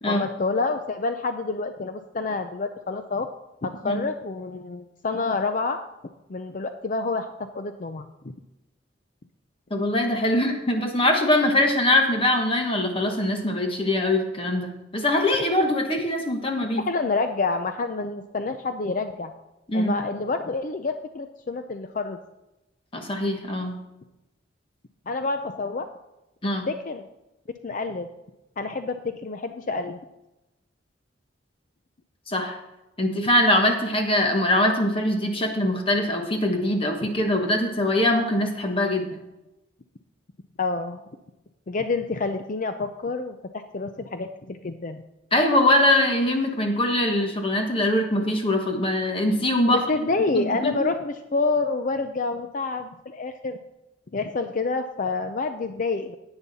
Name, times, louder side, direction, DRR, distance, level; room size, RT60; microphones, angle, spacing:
voice 1, 0.1-3.3 3.6-5.8 6.3-8.3 16.8-19.3 19.7-22.2 25.1-25.9 26.7-27.1 27.6-28.1 28.6-30.0 37.0-37.1 40.6-41.0 41.7-45.0 49.7-53.6 54.1-56.2, left 3 dB, 45° left, 8 dB, 0.5 m, -28 dB
voice 2, 9.7-16.8 19.7-19.9 22.9-23.8 26.4-26.7 32.3-32.6 33.0-39.1 45.3-49.9 50.3-50.9, left 1 dB, 30° left, 3 dB, 1.3 m, -22 dB
10.5 x 8.9 x 4.1 m, 0.96 s
head